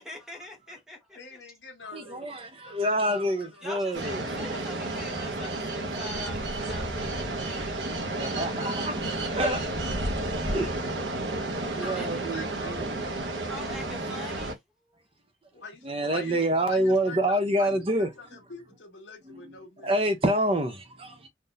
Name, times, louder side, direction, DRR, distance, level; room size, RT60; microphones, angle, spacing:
voice 1, 0.0-1.2 3.6-7.8 11.8-12.1 13.5-14.6, left 1 dB, 5° right, 1.0 m, -43 dB
voice 2, 1.1-3.9 8.3-8.8 11.8-12.0 12.3-12.8 15.6-15.7 16.1-16.4 16.6-19.9, left 3 dB, 75° left, 1.4 m, -44 dB
voice 3, 1.9-4.2 8.0-9.0 9.3-9.6 10.5-10.7 11.6-12.9 15.9-18.1 19.3-19.5 19.8-21.3, right 1 dB, 30° right, 0.6 m, -27 dB
sound 1, 3.9-14.5, right 2 dB, 75° right, 1.0 m, -31 dB
3.8 x 2.6 x 2.6 m
head